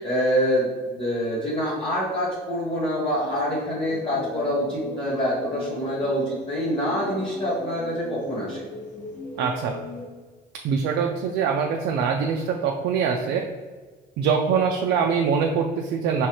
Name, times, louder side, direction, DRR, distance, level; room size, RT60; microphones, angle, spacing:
voice 1, 0.0-8.6, equal, 30° left, -6 dB, 1.1 m, -26 dB
sound 1, 3.1-10.1, left 2 dB, 50° left, 1.5 m, -39 dB
voice 2, 9.4-9.8 10.6-13.4 14.2-16.3, right 6 dB, 80° right, 2 dB, 0.4 m, -23 dB
4.7 x 3.1 x 2.9 m, 1.4 s
cardioid pair, 110°, 17 cm